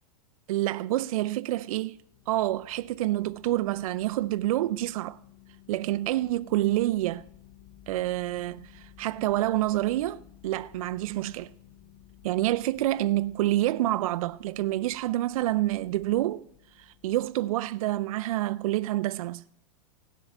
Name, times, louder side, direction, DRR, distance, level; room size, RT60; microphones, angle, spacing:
voice 1, 0.5-2.0 2.3-5.2 5.7-7.2 7.9-11.5 12.2-16.5 16.8-19.4, right 15 dB, 65° right, 0.5 m, -28 dB
sound 1, 1.9-18.2, left 11 dB, 30° left, 0.9 m, -55 dB
16.5 x 7.5 x 7.9 m
supercardioid pair, 165°, 19 cm